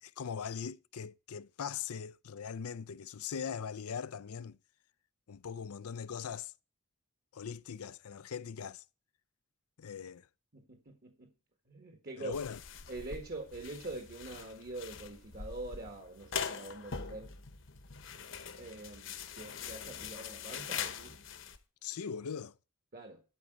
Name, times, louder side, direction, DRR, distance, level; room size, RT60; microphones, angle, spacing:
voice 1, 0.0-4.6 5.3-6.5 7.3-8.8 9.8-10.3 12.2-12.6 21.8-22.5, left 7 dB, 90° left, 0.5 m, -40 dB
voice 2, 10.5-11.3 11.7-12.4 12.9-17.3 18.6-21.2 22.9-23.2, right 2 dB, 45° right, 1.6 m, -44 dB
sound 1, 12.3-21.6, left 6 dB, 60° left, 1.1 m, -43 dB
12.0 x 5.2 x 7.7 m
head